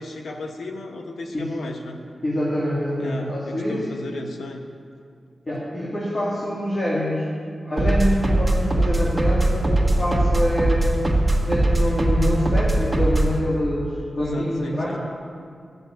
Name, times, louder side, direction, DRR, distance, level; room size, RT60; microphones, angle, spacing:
voice 1, 0.0-2.0 3.0-4.6 14.0-15.0, left 2 dB, 90° left, 3 dB, 1.1 m, -35 dB
voice 2, 2.2-3.8 5.5-7.3 7.6-11.1 11.4-15.0, equal, 45° left, -7 dB, 2.5 m, -25 dB
sound 1, 7.8-13.4, right 1 dB, 10° right, 1.5 m, -20 dB
11.0 x 6.6 x 9.0 m, 2.2 s
wide cardioid pair, 80°, 0 cm